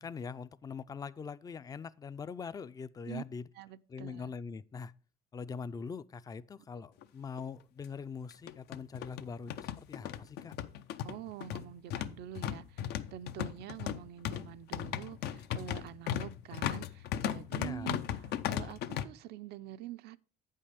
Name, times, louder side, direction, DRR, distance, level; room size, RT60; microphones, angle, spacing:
voice 1, 0.0-3.5 3.9-4.9 5.3-10.5 17.5-17.9, left 5 dB, 20° left, 0.4 m, -42 dB
voice 2, 3.5-4.3 11.0-20.2, right 12 dB, 75° right, 0.5 m, -46 dB
sound 1, 7.0-7.1 7.4-7.5 8.3-19.0, left 10 dB, 75° left, 0.6 m, -37 dB
8.5 x 5.6 x 4.9 m
cardioid pair, 110°, 17 cm